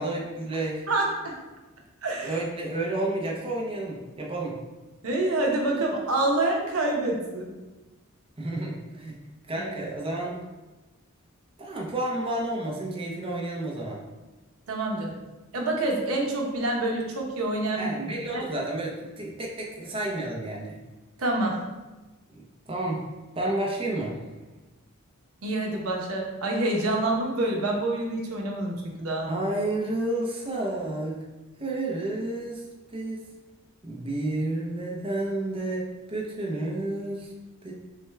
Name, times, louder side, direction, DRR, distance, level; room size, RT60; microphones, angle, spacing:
voice 1, 0.0-0.8 2.2-4.6 8.4-9.2 9.5-10.4 11.6-14.0 17.7-20.8 22.3-22.4 22.7-23.0 23.4-24.2 29.3-31.2 31.6-32.6 32.9-33.2 33.8-37.3 37.6-37.7, right 2 dB, 25° right, -2 dB, 0.6 m, -30 dB
voice 2, 0.9-1.3 2.0-2.4 5.0-7.5 9.6-9.7 14.7-15.2 15.5-17.9 18.3-18.4 21.2-21.6 25.4-29.3, right 2 dB, 80° right, 0 dB, 0.8 m, -27 dB
6.4 x 2.2 x 3.3 m, 1.1 s
head